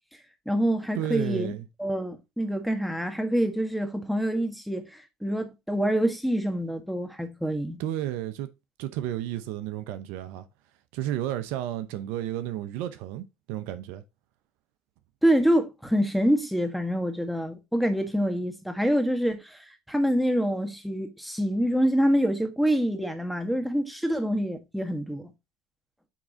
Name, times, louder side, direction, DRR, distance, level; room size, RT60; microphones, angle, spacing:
voice 1, 0.4-1.5 1.8-7.8 15.2-19.6 19.9-25.3, equal, ahead, 1.6 m, -26 dB
voice 2, 1.0-1.6 7.8-8.5 8.8-10.5 10.9-14.0, right 12 dB, 80° right, 0.7 m, -32 dB
8.7 x 3.7 x 4.1 m
supercardioid pair, 80°, 3 cm